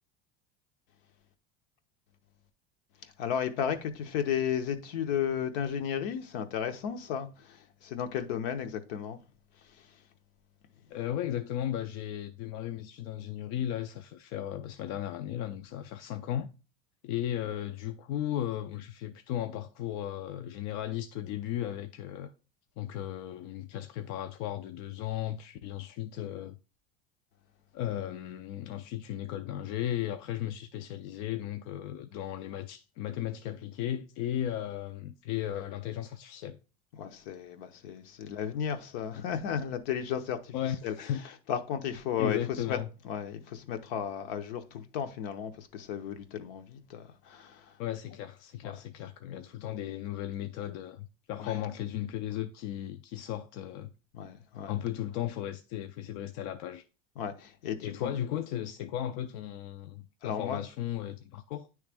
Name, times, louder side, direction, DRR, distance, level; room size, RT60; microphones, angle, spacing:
voice 1, 3.0-9.2 9.6-10.0 36.9-40.5 40.8-41.1 41.5-42.8 43.0-47.8 48.6-48.7 51.4-51.6 54.1-54.7 57.2-58.1 60.2-60.6, left 8 dB, 70° left, 0.9 m, -34 dB
voice 2, 10.9-16.5 17.0-22.3 22.8-26.6 27.7-36.6 38.2-38.3 40.5-41.2 42.2-42.9 47.8-53.9 54.7-56.8 57.8-61.7, left 11 dB, 55° left, 0.4 m, -35 dB
9.5 x 3.2 x 3.5 m
supercardioid pair, 150°, 29 cm